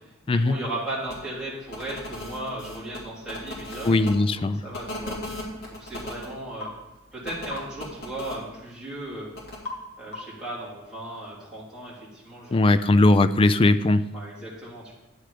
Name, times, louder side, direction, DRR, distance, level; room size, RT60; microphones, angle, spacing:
voice 1, 0.3-4.0 4.4-5.2 5.8-6.7 7.1-9.3 10.0-12.9 14.1-14.9, right 1 dB, 5° right, -8 dB, 3.2 m, -36 dB
sound 1, 1.1-1.2 1.7-4.1 4.7-6.3 7.2-8.4 9.3-9.6, left 1 dB, 50° left, 2.9 m, -37 dB
voice 2, 3.8-4.6 12.5-14.1, left 2 dB, 25° left, 12 dB, 0.3 m, -19 dB
sound 2, 6.6-6.8 7.5-7.7 9.6-9.9 10.1-10.5, left 3 dB, 80° left, 2.3 m, -36 dB
10.5 x 7.5 x 5.0 m, 0.96 s
head